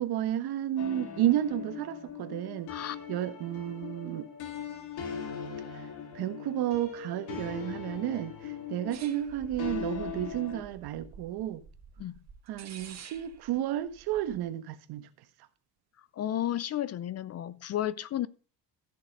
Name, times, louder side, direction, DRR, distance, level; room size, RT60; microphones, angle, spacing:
voice 1, 0.0-2.7 3.1-4.3 5.7-5.9 6.1-11.6 12.5-15.1, right 12 dB, 75° right, 1.3 m, -32 dB
sound 1, 0.8-10.6, left 8 dB, 80° left, 2.6 m, -40 dB
sound 2, 8.9-14.4, right 6 dB, 45° right, 1.6 m, -49 dB
voice 2, 16.1-18.3, left 11 dB, 40° left, 0.5 m, -32 dB
14.0 x 6.6 x 5.3 m
cardioid pair, 130°, 38 cm